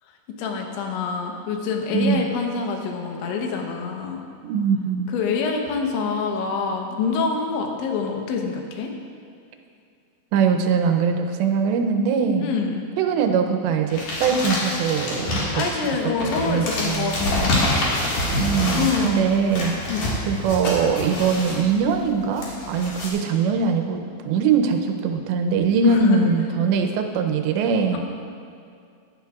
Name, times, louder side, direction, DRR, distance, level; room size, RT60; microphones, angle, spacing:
voice 1, 0.4-4.2 5.1-8.9 12.4-12.9 15.3-17.7 18.7-19.3 19.9-20.1 25.8-26.3 27.9-28.0, left 5 dB, 80° left, 2 dB, 3.3 m, -26 dB
voice 2, 1.9-2.2 4.4-5.1 10.3-12.5 13.0-15.6 16.2-17.1 18.3-19.8 20.3-24.0 24.3-28.0, right 6 dB, 80° right, 4 dB, 2.8 m, -22 dB
sound 1, 13.9-23.1, left 1 dB, 55° left, 2.8 m, -27 dB
15.5 x 11.0 x 2.4 m, 2.4 s
omnidirectional pair, 5.4 m